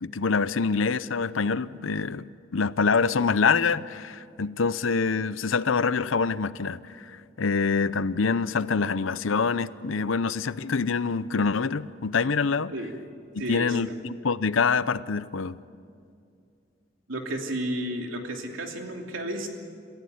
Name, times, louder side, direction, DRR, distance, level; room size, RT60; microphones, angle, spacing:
voice 1, 0.0-12.7 13.3-15.6, left 5 dB, 80° left, 0.7 m, -25 dB
voice 2, 13.4-14.0 17.1-19.5, right 1 dB, 85° right, 2.9 m, -32 dB
27.5 x 15.5 x 9.5 m
head